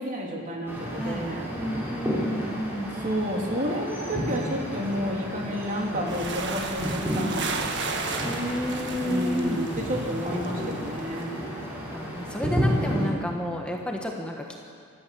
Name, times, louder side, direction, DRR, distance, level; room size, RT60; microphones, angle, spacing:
voice 1, 0.0-1.5 3.0-7.6 9.0-11.4, equal, 35° right, -1 dB, 3.1 m, -31 dB
sound 1, 0.7-13.1, equal, 10° right, 4.4 m, -32 dB
voice 2, 1.0-2.9 4.6-4.7 5.0-5.2 8.2-9.6 11.9-14.6, equal, 5° left, 0 dB, 1.5 m, -31 dB
sound 2, 6.1-11.3, right 4 dB, 55° right, 1.6 m, -35 dB
24.0 x 14.0 x 7.7 m, 2.3 s
head